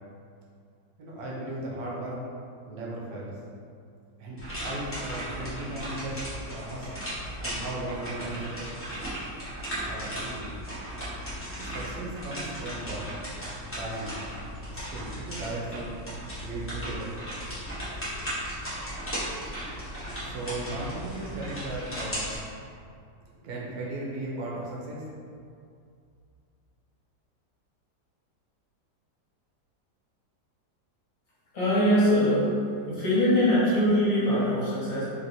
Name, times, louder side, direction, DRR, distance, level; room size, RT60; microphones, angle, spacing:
voice 1, 1.0-2.2 2.6-3.3 4.2-6.9 7.4-8.7 9.8-10.5 11.6-13.1 13.8-14.2 14.7-15.9 16.4-17.2 20.2-22.3 23.3-25.0, right 2 dB, 70° right, -4 dB, 1.0 m, -36 dB
sound 1, 4.4-22.4, equal, 20° left, 0.3 m, -36 dB
voice 2, 31.5-32.5 32.9-35.0, equal, 55° left, -11 dB, 1.5 m, -22 dB
3.2 x 2.9 x 2.6 m, 2.4 s
omnidirectional pair, 1.8 m